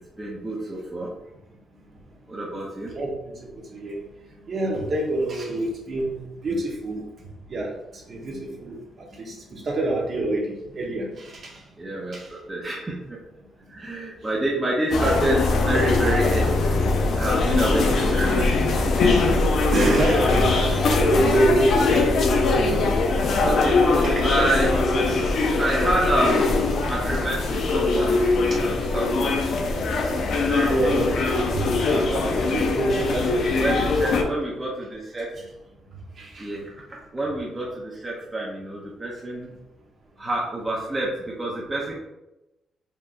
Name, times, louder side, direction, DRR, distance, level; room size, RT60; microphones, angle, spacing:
voice 1, 0.2-1.1 2.3-2.9 11.8-13.2 13.7-16.6 17.2-18.5 23.3-25.3 25.6-26.5 26.8-29.7 30.5-31.1 31.9-32.7 33.5-35.3 36.4-39.6 40.2-42.0, right 1 dB, 15° right, -4 dB, 0.8 m, -28 dB
voice 2, 2.9-4.0 4.4-7.0 7.5-8.8 9.1-11.6 12.1-12.3 19.1-22.1 30.6-33.8 36.2-36.5, right 2 dB, 45° right, -2 dB, 1.2 m, -27 dB
sound 1, 14.9-34.2, left 3 dB, 60° left, 0.7 m, -21 dB
4.6 x 3.6 x 2.6 m, 0.93 s
cardioid pair, 130°, 0 cm